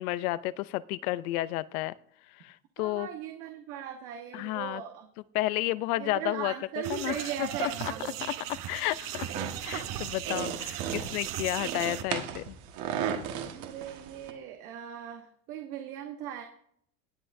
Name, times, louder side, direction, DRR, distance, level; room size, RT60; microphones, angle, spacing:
voice 1, 0.0-1.9 2.4-3.1 4.3-4.8 5.3-6.5 6.9-7.9 8.5-12.6, left 17 dB, 85° left, 18 dB, 0.6 m, -32 dB
voice 2, 2.8-5.1 6.0-8.3 13.5-16.4, right 10 dB, 85° right, 4 dB, 1.3 m, -39 dB
sound 1, 6.8-12.0, right 12 dB, 50° right, 0.9 m, -37 dB
sound 2, 9.3-14.3, right 8 dB, 65° right, 1.6 m, -36 dB
19.0 x 7.8 x 2.6 m, 0.66 s
supercardioid pair, 120°, 42 cm